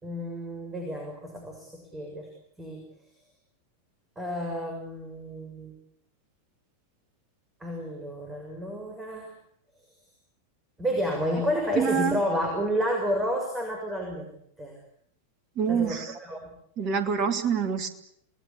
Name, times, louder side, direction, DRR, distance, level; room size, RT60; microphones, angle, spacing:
voice 1, 0.0-2.3 2.6-2.9 4.2-5.8 7.6-9.3 9.8-9.9 10.8-14.3 14.6-14.8 15.7-16.5, equal, 15° right, 2 dB, 6.3 m, -30 dB
voice 2, 11.8-12.2 15.6-16.2 16.8-17.9, right 7 dB, 40° right, 9 dB, 2.8 m, -26 dB
28.0 x 19.5 x 8.6 m, 0.69 s
figure-of-eight pair, 90°, 0 cm